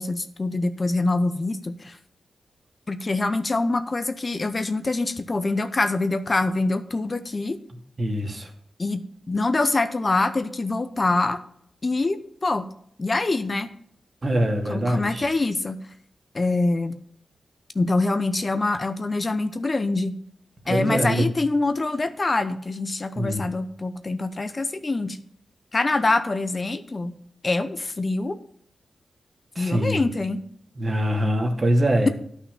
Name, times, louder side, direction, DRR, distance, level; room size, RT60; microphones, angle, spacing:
voice 1, 0.0-2.0 2.9-7.6 8.8-11.4 11.8-12.6 13.0-13.7 14.7-15.8 16.3-17.0 17.7-20.1 20.7-25.2 25.7-27.1 27.4-28.4 29.6-30.4, left 2 dB, 40° left, 10 dB, 0.8 m, -25 dB
voice 2, 8.0-8.5 14.2-15.3 20.7-21.3 23.2-23.4 29.6-30.1 30.8-32.1, equal, 45° right, 3 dB, 2.2 m, -23 dB
9.8 x 5.8 x 8.3 m, 0.66 s
cardioid pair, 65°, 0 cm